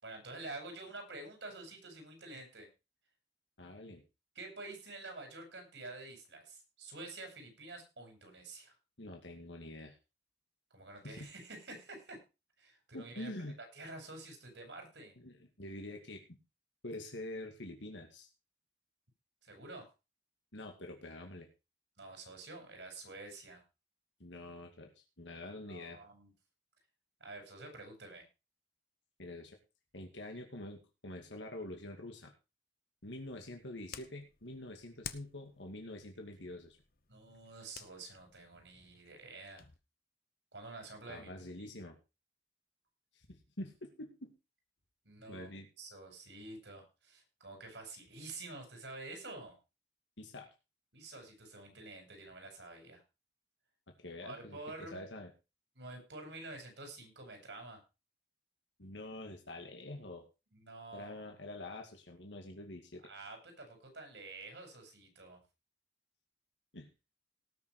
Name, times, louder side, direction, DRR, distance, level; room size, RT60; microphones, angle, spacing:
voice 1, 0.0-2.7 4.3-8.7 10.7-12.2 12.6-13.3 13.6-15.1 19.4-19.9 22.0-23.6 25.7-26.3 27.2-28.2 37.1-39.7 40.5-41.3 41.6-41.7 45.0-45.5 45.8-49.6 50.9-53.0 54.2-55.1 55.7-57.8 60.5-61.4 63.0-65.4, right 2 dB, 80° right, 4 dB, 6.1 m, -48 dB
voice 2, 3.6-4.0 9.0-10.0 11.0-11.3 12.9-13.6 15.2-16.2 16.8-18.3 20.5-21.5 24.2-26.0 29.2-29.6 29.9-32.3 33.0-36.8 41.1-42.0 43.1-44.3 45.3-45.7 50.2-50.5 54.0-55.3 58.8-60.2 60.9-63.0 66.7-66.9, left 1 dB, 90° left, 3 dB, 2.3 m, -46 dB
sound 1, 33.0-39.8, left 8 dB, 55° left, 1.0 m, -53 dB
18.5 x 6.6 x 4.8 m, 0.29 s
head